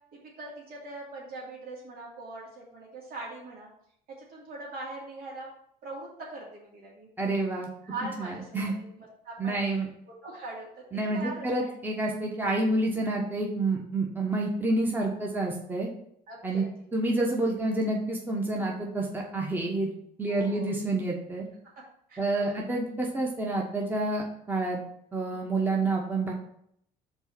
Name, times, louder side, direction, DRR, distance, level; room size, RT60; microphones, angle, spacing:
voice 1, 0.1-3.7 4.2-5.5 5.8-7.1 7.6-11.7 16.3-16.9 20.3-20.7 22.1-22.8 25.3-25.5, right 2 dB, 60° right, -4 dB, 2.6 m, -42 dB
voice 2, 7.2-7.7 8.2-8.7 9.4-9.9 10.9-15.9 16.4-16.6 16.9-19.9 20.2-21.5 22.2-24.8 25.1-26.3, right 2 dB, 10° right, -2 dB, 1.2 m, -28 dB
5.3 x 4.1 x 6.1 m, 0.69 s
cardioid pair, 110°, 17 cm